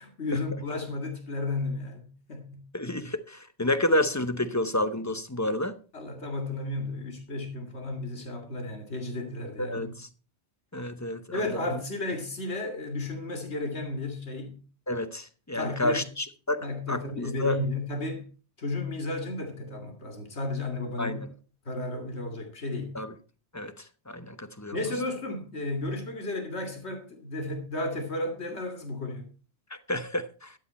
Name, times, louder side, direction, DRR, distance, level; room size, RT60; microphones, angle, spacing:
voice 1, 0.0-2.7 5.9-9.9 11.3-14.6 15.5-16.1 16.6-18.3 18.6-21.2 21.7-23.0 24.7-29.3, left 2 dB, 85° left, 2.5 m, -33 dB
voice 2, 2.7-5.7 9.6-10.1 10.7-11.4 14.9-16.6 16.9-17.6 21.0-21.3 22.9-23.1 23.5-24.8 29.9-30.5, left 1 dB, 20° left, 0.8 m, -30 dB
12.5 x 9.3 x 4.3 m
omnidirectional pair, 1.1 m